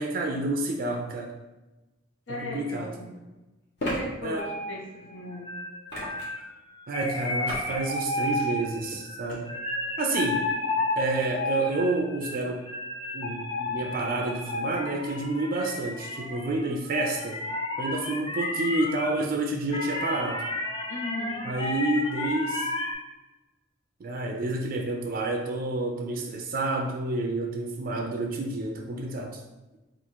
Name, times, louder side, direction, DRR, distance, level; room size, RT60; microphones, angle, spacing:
voice 1, 0.0-1.3 2.3-2.9 4.2-4.5 6.9-9.5 10.0-10.5 11.0-12.7 13.1-17.4 17.8-20.5 21.4-22.7 24.0-29.4, right 2 dB, 50° right, 2 dB, 0.4 m, -29 dB
voice 2, 2.3-3.1 3.8-5.5 20.9-21.5, left 2 dB, 85° left, -2 dB, 1.0 m, -37 dB
sound 1, 2.3-2.4 3.8-4.0 5.9-6.4 7.5-7.7 8.2-8.5 9.3-9.4, equal, 60° left, 1.1 m, -33 dB
sound 2, 4.4-19.1 19.7-22.9, left 2 dB, 25° left, 0.5 m, -32 dB
3.6 x 2.4 x 4.4 m, 1.1 s
head